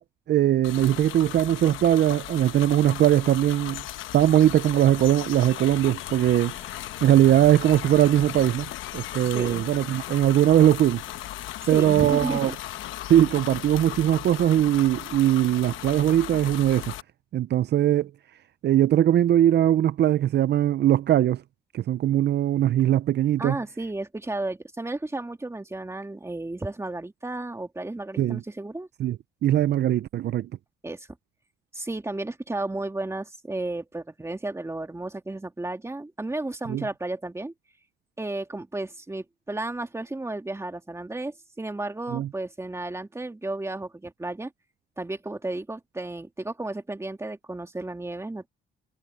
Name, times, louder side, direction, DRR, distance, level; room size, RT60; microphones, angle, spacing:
voice 1, 0.3-3.8 4.1-6.5 7.0-8.7 8.9-11.0 11.7-12.5 13.1-16.9 17.3-18.1 18.6-21.4 21.7-23.6 28.2-28.4 29.0-29.2 29.4-30.5 36.7-36.8 42.1-42.3, right 12 dB, 60° right, 0.5 m, -20 dB
sound 1, 0.6-17.0, left 14 dB, 90° left, 1.0 m, -37 dB
voice 2, 11.7-12.5 23.4-28.9 30.8-31.1 31.7-37.5 38.2-44.5 45.0-48.5, right 2 dB, 15° right, 2.3 m, -33 dB
cardioid pair, 90°, 20 cm